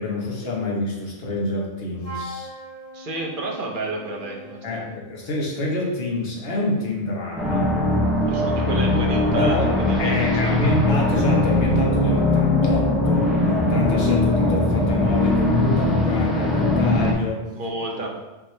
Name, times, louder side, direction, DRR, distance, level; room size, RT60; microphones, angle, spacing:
voice 1, 0.0-2.5 4.6-7.8 9.3-13.4 13.7-17.4, left 2 dB, 60° left, -2 dB, 1.2 m, -26 dB
Wind instrument woodwind instrument, 2.0-4.9, equal, 80° left, 1.7 m, -40 dB
voice 2, 2.9-5.0 8.3-10.7 17.5-18.1, right 2 dB, 50° right, 0 dB, 0.9 m, -31 dB
sound 1, 7.4-17.1, left 2 dB, ahead, 0.6 m, -20 dB
5.4 x 3.0 x 3.2 m, 1.1 s
omnidirectional pair, 1.2 m